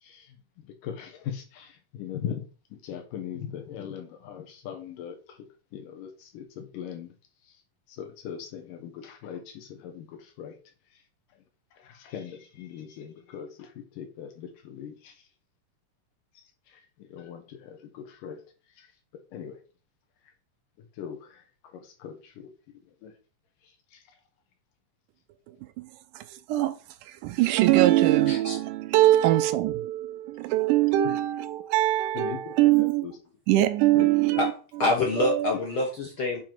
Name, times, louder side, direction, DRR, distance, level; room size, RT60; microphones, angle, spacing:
voice 1, 0.0-7.1 7.4-7.6 7.9-10.6 10.9-11.0 11.4-11.5 11.7-15.3 16.3-18.4 18.8-18.9 19.3-19.6 20.8-21.4 21.7-22.5 23.0-23.1 23.6-24.0 32.1-33.2 33.9-34.1, left 8 dB, 85° left, 2.7 m, -40 dB
voice 2, 27.2-33.1 33.5-34.5 35.2-35.5, right 15 dB, 80° right, 2.0 m, -22 dB
voice 3, 34.8-36.4, left 2 dB, 65° left, 1.2 m, -26 dB
7.0 x 3.8 x 4.5 m
omnidirectional pair, 3.7 m